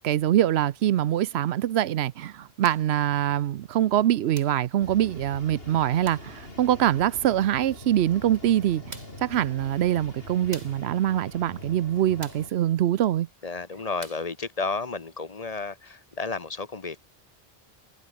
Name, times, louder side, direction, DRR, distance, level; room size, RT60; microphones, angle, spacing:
voice 1, 0.0-13.3, right 12 dB, 90° right, 0.9 m, -24 dB
sound 1, 2.6-2.9 4.3-4.7 6.0-6.3 8.1-8.2 8.9-9.3 10.5-10.9 12.2-12.5 14.0-14.3, right 1 dB, 40° right, 7.2 m, -45 dB
sound 2, 4.8-12.5, left 1 dB, 70° left, 5.8 m, -43 dB
voice 2, 13.4-17.0, left 4 dB, 40° left, 1.1 m, -32 dB
omnidirectional pair, 1.0 m